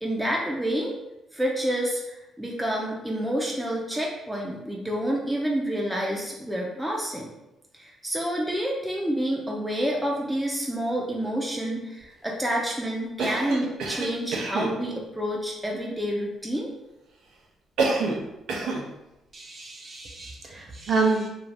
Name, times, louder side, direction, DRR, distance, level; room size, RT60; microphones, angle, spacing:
voice 1, 0.0-0.9 1.3-7.3 7.7-16.7, right 1 dB, 5° right, -3 dB, 0.5 m, -28 dB
Cough, 13.2-14.8 17.8-18.2 18.5-18.9, right 3 dB, 80° right, 0.5 m, -27 dB
voice 2, 19.3-21.3, right 4 dB, 40° right, -1 dB, 0.7 m, -28 dB
2.5 x 2.4 x 3.3 m, 0.95 s
cardioid pair, 90°, 0 cm